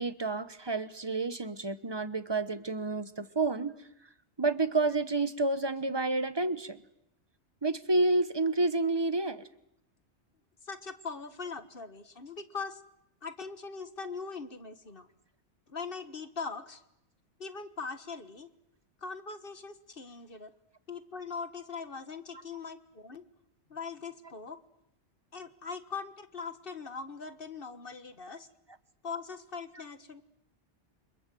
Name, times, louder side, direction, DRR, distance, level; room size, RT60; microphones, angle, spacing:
voice 1, 0.0-3.7 4.4-6.8 7.6-9.5, right 2 dB, 25° right, 13 dB, 1.1 m, -29 dB
voice 2, 10.6-12.8 13.2-15.1 15.7-16.8 17.4-18.5 19.0-20.5 20.9-23.2 23.7-24.6 25.3-28.5 29.0-30.2, left 5 dB, 50° left, 10 dB, 1.7 m, -41 dB
29.0 x 25.5 x 7.8 m, 0.79 s
omnidirectional pair, 1.2 m